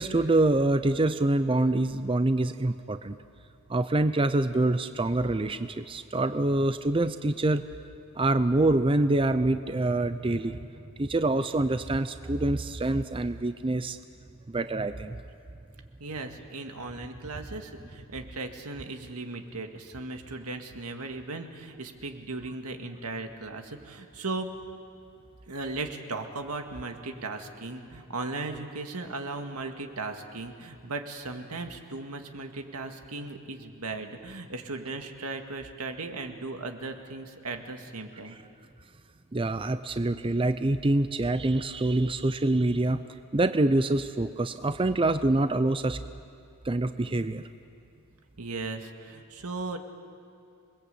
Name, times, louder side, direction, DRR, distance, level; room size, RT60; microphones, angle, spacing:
voice 1, 0.0-3.2 3.7-7.6 8.2-10.7 11.0-14.0 14.5-15.2 39.3-43.0 43.3-46.0 46.6-47.4, right 2 dB, 25° right, 10 dB, 0.5 m, -25 dB
voice 2, 16.0-24.5 25.5-38.4 48.4-49.8, right 3 dB, 85° right, 5 dB, 1.9 m, -37 dB
27.5 x 21.0 x 8.3 m, 2.4 s
head